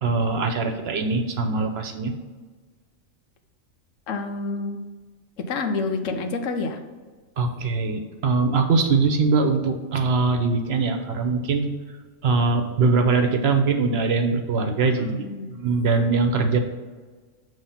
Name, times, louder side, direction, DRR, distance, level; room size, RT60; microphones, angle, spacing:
voice 1, 0.0-2.1 7.4-11.7 12.2-16.6, right 4 dB, 60° right, 6 dB, 0.8 m, -22 dB
voice 2, 4.1-4.8 5.4-6.8 15.0-15.6, left 3 dB, 75° left, 6 dB, 1.1 m, -28 dB
7.2 x 3.1 x 5.6 m, 1.4 s
omnidirectional pair, 1.3 m